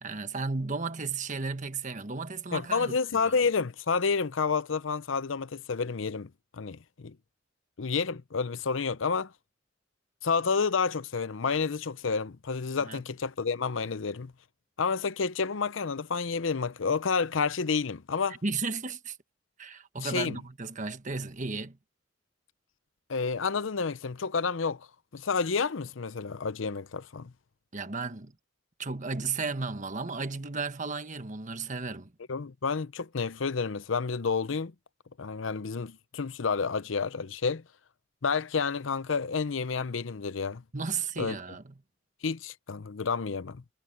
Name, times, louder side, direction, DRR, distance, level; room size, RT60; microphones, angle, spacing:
voice 1, 0.0-3.0 3.3-3.4 12.8-13.0 18.3-19.2 19.6-21.8 27.7-28.3 28.8-32.1 40.7-41.7, right 4 dB, 40° right, 1.4 m, -34 dB
voice 2, 2.5-7.2 7.8-9.3 10.2-14.3 14.8-18.4 20.0-20.4 23.1-24.9 25.1-27.3 32.3-34.7 35.2-37.6 38.2-40.6 41.2-41.4 42.2-43.6, left 5 dB, 85° left, 0.7 m, -30 dB
head